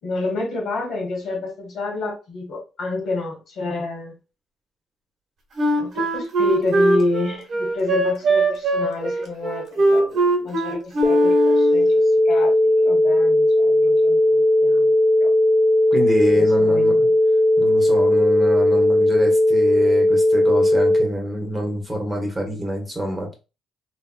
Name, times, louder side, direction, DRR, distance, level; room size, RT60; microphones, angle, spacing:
voice 1, 0.0-4.1 5.8-15.3 16.3-17.1, left 2 dB, 65° left, 1 dB, 1.7 m, -29 dB
Wind instrument woodwind instrument, 5.6-11.9, right 1 dB, 60° right, 1.3 m, -21 dB
sound 1, 11.0-21.0, left 1 dB, 10° left, 0.4 m, -17 dB
voice 2, 15.9-17.1 17.6-23.3, equal, 10° right, 0 dB, 1.5 m, -26 dB
3.3 x 3.0 x 2.3 m, 0.30 s
cardioid pair, 90°, 0 cm